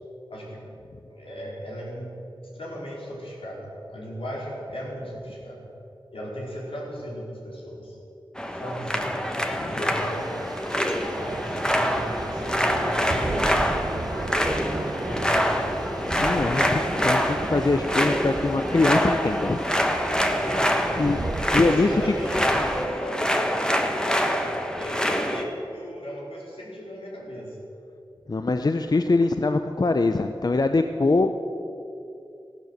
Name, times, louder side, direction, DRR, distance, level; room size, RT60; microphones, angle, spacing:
voice 1, 0.3-0.6 1.1-2.1 2.5-5.7 6.1-8.0 8.5-10.4 11.0-14.6 14.9-15.8 20.3-27.6, equal, 80° left, -4 dB, 4.4 m, -36 dB
sound 1, 8.4-25.4, equal, 10° left, 1.3 m, -26 dB
Thunder / Rain, 9.9-22.9, right 2 dB, 45° right, 0.9 m, -34 dB
voice 2, 16.1-19.6 21.0-21.3 21.5-22.1 28.3-31.3, left 3 dB, 45° left, 7 dB, 0.6 m, -23 dB
15.5 x 12.0 x 7.9 m, 2.8 s
wide cardioid pair, 80°, 9 cm